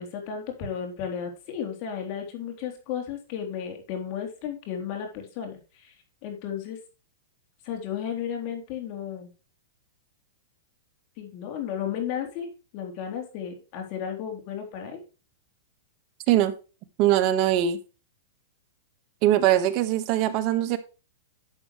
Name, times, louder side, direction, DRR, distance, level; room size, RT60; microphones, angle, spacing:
voice 1, 0.0-5.9 6.2-6.8 7.6-9.3 11.2-15.0, left 8 dB, 45° left, 3 dB, 3.5 m, -34 dB
voice 2, 17.0-17.8 19.2-20.8, right 12 dB, 40° right, 11 dB, 1.3 m, -21 dB
11.0 x 7.2 x 3.1 m, 0.33 s
hypercardioid pair, 140°, 0 cm